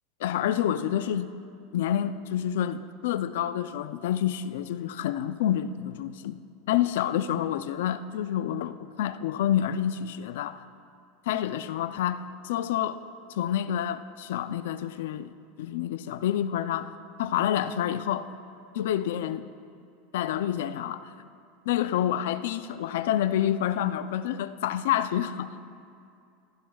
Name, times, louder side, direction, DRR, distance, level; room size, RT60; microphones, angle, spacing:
voice 1, 0.2-1.3 1.7-6.4 6.7-10.6 11.3-13.0 13.3-16.9 17.2-18.3 18.7-19.5 20.1-21.1 21.7-25.8, left 10 dB, 75° left, 12 dB, 0.4 m, -28 dB
15.5 x 15.0 x 2.3 m, 2.5 s
supercardioid pair, 170°, 0 cm